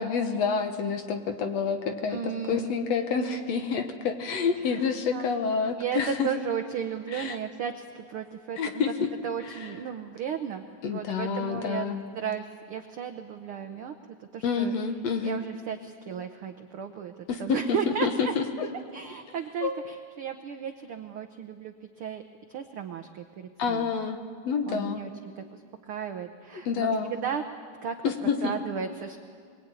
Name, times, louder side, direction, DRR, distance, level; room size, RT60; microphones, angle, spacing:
voice 1, 0.0-6.3 7.1-7.4 8.6-9.1 9.4-9.7 10.8-12.0 14.4-15.4 17.3-17.6 17.9-18.7 19.6-19.7 23.6-24.2 24.4-25.0 26.7-27.1 28.0-28.5, left 5 dB, 60° left, 6 dB, 2.2 m, -28 dB
voice 2, 2.1-2.7 5.1-5.3 5.8-8.8 9.2-11.9 12.2-14.7 15.2-18.3 18.9-22.2 22.5-23.9 24.7-25.1 25.4-25.6 25.9-27.4 27.8-28.0 28.2-29.2, right 8 dB, 75° right, 6 dB, 1.2 m, -34 dB
23.0 x 21.5 x 9.1 m, 2.1 s
omnidirectional pair, 3.6 m